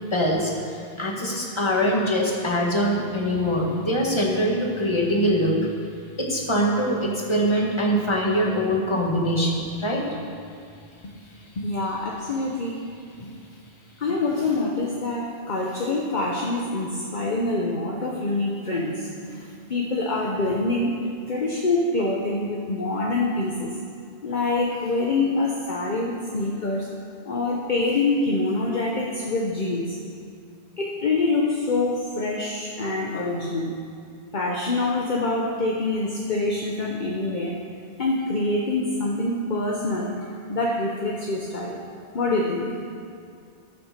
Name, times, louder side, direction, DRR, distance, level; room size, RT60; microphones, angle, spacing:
voice 1, 0.1-5.5 6.2-10.0, equal, 25° left, -2 dB, 1.6 m, -23 dB
voice 2, 11.6-12.8 13.2-13.3 14.0-20.9 21.3-23.7 24.2-26.9 27.3-30.0 30.8-33.7 34.3-37.5 38.0-41.8 42.1-42.7, left 2 dB, 50° left, -1 dB, 1.0 m, -25 dB
14.0 x 5.9 x 6.6 m, 2.3 s
omnidirectional pair, 1.0 m